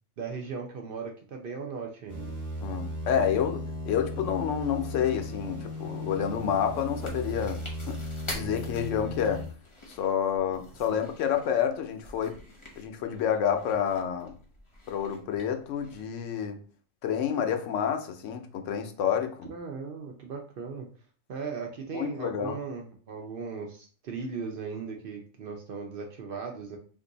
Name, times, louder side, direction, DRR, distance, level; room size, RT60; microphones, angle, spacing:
voice 1, 0.2-2.3 10.9-11.0 19.5-20.9 21.3-26.8, right 5 dB, 60° right, 0.6 m, -37 dB
sound 1, 2.1-9.5, left 1 dB, 30° right, 0.8 m, -36 dB
voice 2, 2.6-8.0 8.3-9.4 10.0-12.3 12.8-14.3 14.9-16.6 17.0-19.4 21.9-22.6, left 8 dB, 80° left, 0.9 m, -29 dB
Chewing mastication, 6.3-16.0, left 1 dB, 30° left, 0.7 m, -47 dB
2.6 x 2.5 x 3.8 m
omnidirectional pair, 1.3 m